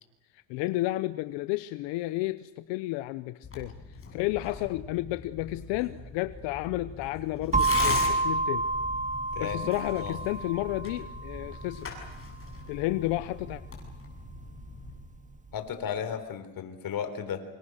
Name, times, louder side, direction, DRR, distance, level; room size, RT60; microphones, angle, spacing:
voice 1, 0.3-8.7 9.4-11.9 12.7-13.6, left 18 dB, 85° left, 13 dB, 1.0 m, -32 dB
Tearing, 3.4-15.0, left 4 dB, 30° left, 7.9 m, -41 dB
sound 1, 7.5-15.4, right 2 dB, 15° right, 2.0 m, -31 dB
voice 2, 9.3-9.7 9.9-10.2 15.5-17.4, left 8 dB, 55° left, 9 dB, 4.0 m, -34 dB
27.5 x 25.5 x 6.5 m, 0.99 s
cardioid pair, 115°, 42 cm